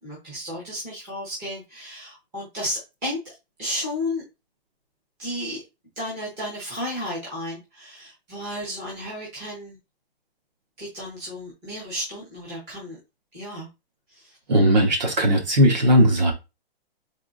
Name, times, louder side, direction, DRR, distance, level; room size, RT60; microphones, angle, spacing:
voice 1, 0.0-4.2 5.2-5.6 6.0-9.8 10.8-13.0 13.3-13.7 14.1-14.4, left 1 dB, 5° right, 0.7 m, -33 dB
voice 2, 14.5-16.3, equal, 45° right, 1.5 m, -18 dB
3.7 x 3.1 x 3.8 m
hypercardioid pair, 180°, 31 cm